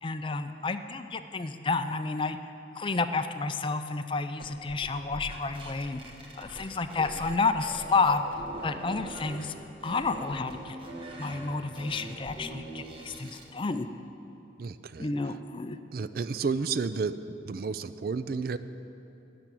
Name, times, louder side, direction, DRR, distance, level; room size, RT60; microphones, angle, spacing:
voice 1, 0.0-2.4 2.8-6.0 6.4-8.2 8.6-9.5 9.8-10.8 11.2-13.9 15.0-15.8, left 4 dB, 25° left, 9 dB, 0.4 m, -30 dB
sound 1, 4.4-7.3 7.6-9.4 9.8-13.5, right 1 dB, 30° right, 1.3 m, -42 dB
voice 2, 14.6-15.1 15.9-17.2 17.5-18.6, right 4 dB, 50° right, 12 dB, 0.4 m, -31 dB
13.0 x 6.0 x 9.2 m, 3.0 s
head